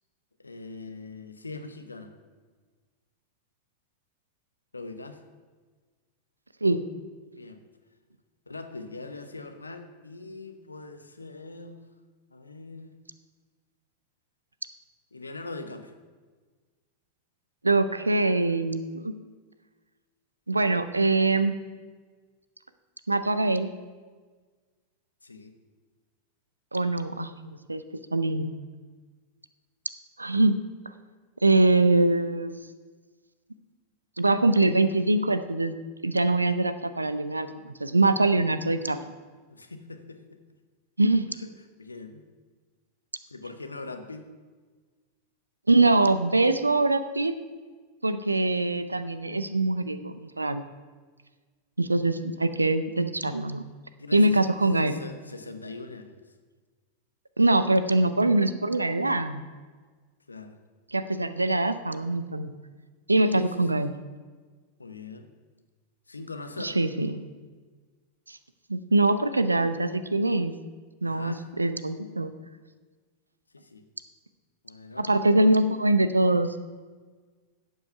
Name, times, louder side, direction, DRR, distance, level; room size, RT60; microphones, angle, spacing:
voice 1, 0.4-2.1 4.7-5.2 7.3-7.6 8.5-11.8 12.3-12.9 15.1-15.9 25.2-25.6 39.5-40.4 41.3-41.5 41.8-42.2 43.3-44.3 54.0-54.5 54.8-56.3 60.3-60.6 63.2-63.8 64.8-65.3 66.1-66.8 71.0-71.4 73.5-73.9 74.6-75.5, left 3 dB, 80° left, 8 dB, 0.9 m, -42 dB
voice 2, 17.6-19.1 20.5-21.6 23.1-23.7 26.7-27.8 28.1-28.5 30.2-30.6 31.4-32.6 34.2-35.8 36.0-39.0 41.0-41.4 45.7-47.3 48.0-50.6 51.8-53.6 54.1-55.0 57.4-59.5 60.9-62.5 63.1-63.9 66.6-67.2 68.3-68.4 68.7-70.5 71.0-72.3 75.0-76.5, right 2 dB, 80° right, 12 dB, 0.6 m, -23 dB
11.0 x 8.1 x 5.7 m, 1.4 s
figure-of-eight pair, 90°, 0 cm